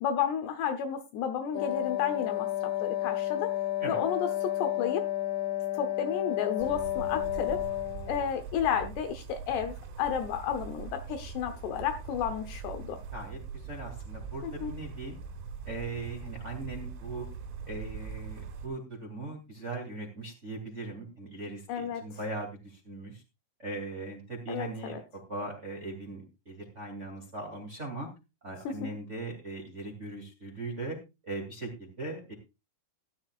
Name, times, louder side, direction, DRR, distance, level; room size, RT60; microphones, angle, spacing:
voice 1, 0.0-2.5 2.8-3.5 3.9-5.0 5.7-7.6 8.0-13.0 14.4-14.7 21.7-22.0 24.5-25.0 28.7-28.8, left 8 dB, 75° left, 7 dB, 2.8 m, -32 dB
Wind instrument woodwind instrument, 1.5-8.3, left 13 dB, 90° left, 2.0 m, -31 dB
sound 1, 6.6-18.7, right 5 dB, 90° right, 4.2 m, -42 dB
voice 2, 13.1-15.2 15.7-17.3 17.7-23.2 23.6-28.1 28.4-31.0 31.2-32.3, right 2 dB, 20° right, 1 dB, 2.0 m, -39 dB
16.5 x 11.0 x 2.4 m, 0.26 s
omnidirectional pair, 5.5 m